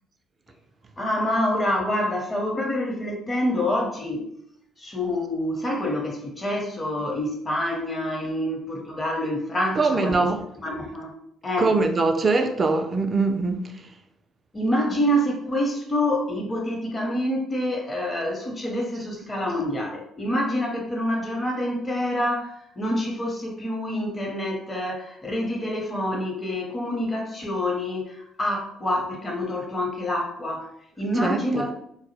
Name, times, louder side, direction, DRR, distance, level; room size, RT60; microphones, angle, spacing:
voice 1, 1.0-4.3 4.8-10.3 10.6-11.1 11.4-11.7 14.5-30.7 31.0-31.8, left 1 dB, 30° left, 0.8 m, -27 dB
voice 2, 9.8-10.4 11.6-13.7 31.2-31.6, right 3 dB, 35° right, 0.3 m, -22 dB
2.2 x 2.0 x 3.0 m
hypercardioid pair, 60°, 0 cm